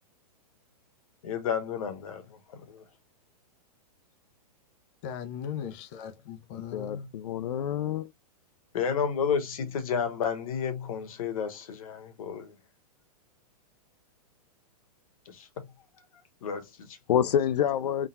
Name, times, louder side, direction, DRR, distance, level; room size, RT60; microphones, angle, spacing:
voice 1, 1.2-2.8 8.7-12.6 15.3-15.6 16.4-17.0, left 7 dB, 60° left, 1.3 m, -31 dB
voice 2, 5.0-7.1, left 8 dB, 20° left, 0.3 m, -38 dB
voice 3, 6.7-8.1 17.1-18.1, left 9 dB, 85° left, 0.5 m, -27 dB
3.8 x 2.2 x 4.1 m
hypercardioid pair, 165°, 20 cm